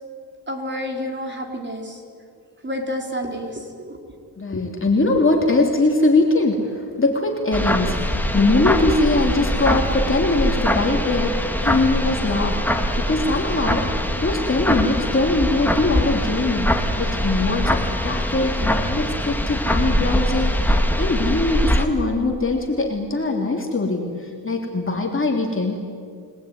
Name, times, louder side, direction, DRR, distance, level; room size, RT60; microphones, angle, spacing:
voice 1, 0.5-2.0 2.6-4.0, equal, 25° right, 2 dB, 4.9 m, -29 dB
voice 2, 4.4-25.8, left 2 dB, 30° left, 1 dB, 3.3 m, -22 dB
sound 1, 7.5-21.8, equal, 5° left, 2.3 m, -22 dB
29.0 x 20.0 x 9.7 m, 2.3 s
cardioid pair, 95°, 41 cm